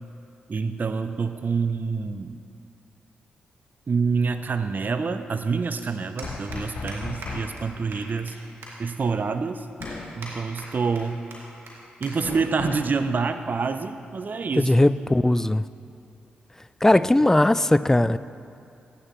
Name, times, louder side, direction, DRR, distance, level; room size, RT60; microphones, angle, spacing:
voice 1, 0.5-2.4 3.9-8.4 8.8-9.7 10.2-11.2 12.0-14.7, right 5 dB, 50° right, 10 dB, 0.6 m, -27 dB
sound 1, 5.8-5.9 6.2-6.6 6.9-7.0 7.2-7.3 7.6-7.7 7.9-8.3 8.6-8.7 9.2-9.3 9.8-10.3 10.6-11.0 11.3-11.4 11.7-11.8 12.0-12.1 12.4-12.7 13.4-13.7, right 2 dB, 75° right, 2.0 m, -40 dB
sound 2, 6.2-7.6 9.8-10.2 12.2-12.9, left 3 dB, 70° left, 2.3 m, -35 dB
voice 2, 14.6-15.6 16.8-18.2, left 1 dB, 10° left, 15 dB, 0.3 m, -19 dB
14.5 x 9.9 x 3.1 m, 2.6 s
supercardioid pair, 40°, 4 cm